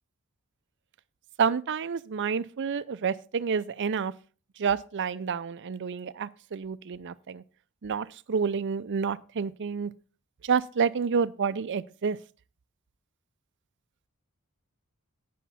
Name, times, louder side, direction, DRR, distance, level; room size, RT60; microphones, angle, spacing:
voice 1, 1.4-4.1 4.6-7.4 7.8-9.9 10.4-12.2, right 6 dB, 55° right, 0.5 m, -29 dB
11.0 x 8.4 x 4.1 m
head